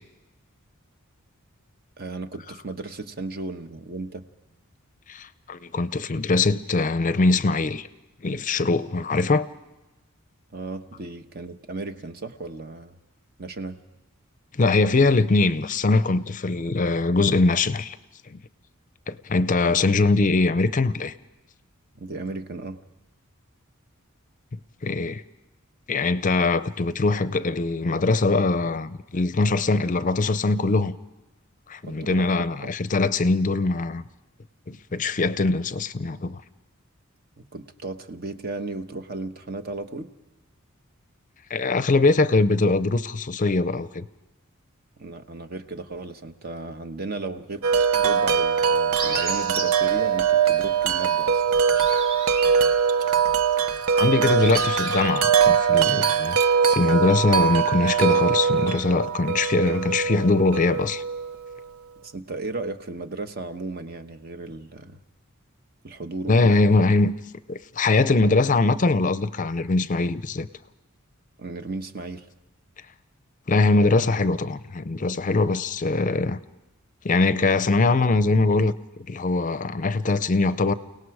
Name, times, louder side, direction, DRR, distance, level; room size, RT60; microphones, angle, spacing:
voice 1, 2.0-4.2 10.5-13.0 13.4-13.8 21.9-22.8 31.8-32.3 32.6-32.7 37.5-40.1 45.0-47.7 47.9-51.4 62.0-65.0 65.8-66.6 71.4-72.3, right 2 dB, 45° right, 1.1 m, -35 dB
voice 2, 5.1-7.9 8.2-9.5 14.5-18.0 18.3-18.4 19.1-21.1 24.8-25.2 25.9-31.0 31.7-34.0 34.7-36.4 41.5-44.1 53.9-56.4 56.7-61.0 66.3-67.1 67.5-70.5 73.5-76.4 77.0-78.7 79.1-80.7, left 3 dB, 40° left, 0.6 m, -22 dB
Wind chime, 47.6-61.6, right 7 dB, 90° right, 0.7 m, -22 dB
sound 1, 48.9-49.8 51.1-55.2, right 3 dB, 70° right, 4.1 m, -34 dB
29.5 x 18.0 x 4.8 m
head